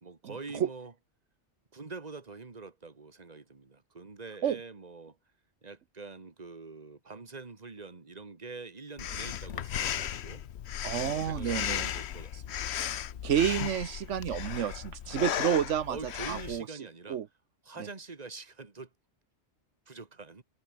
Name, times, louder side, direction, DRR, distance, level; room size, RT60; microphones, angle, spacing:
voice 1, 0.0-0.9 1.7-5.2 5.6-10.4 10.9-12.7 13.1-13.2 15.9-17.2 17.6-18.9 19.9-20.4, right 4 dB, 35° right, 1.9 m, -45 dB
Breathing, 9.0-16.6, left 10 dB, 70° left, 1.0 m, -35 dB
voice 2, 10.8-11.9 13.2-16.0 16.3-16.6 17.1-17.3, right 9 dB, 85° right, 1.2 m, -29 dB
omnidirectional pair, 1.2 m